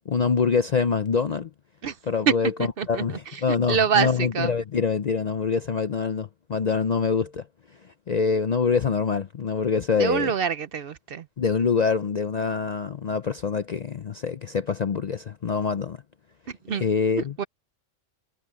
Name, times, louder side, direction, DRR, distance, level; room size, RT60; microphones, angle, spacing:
voice 1, 0.1-1.5 2.1-2.5 2.9-7.4 8.1-10.3 11.4-16.0 16.7-17.3, left 5 dB, 50° left, 0.5 m, -25 dB
voice 2, 2.6-4.5 10.0-11.3 16.5-16.8 17.2-17.4, right 7 dB, 55° right, 0.7 m, -26 dB
omnidirectional pair, 1.3 m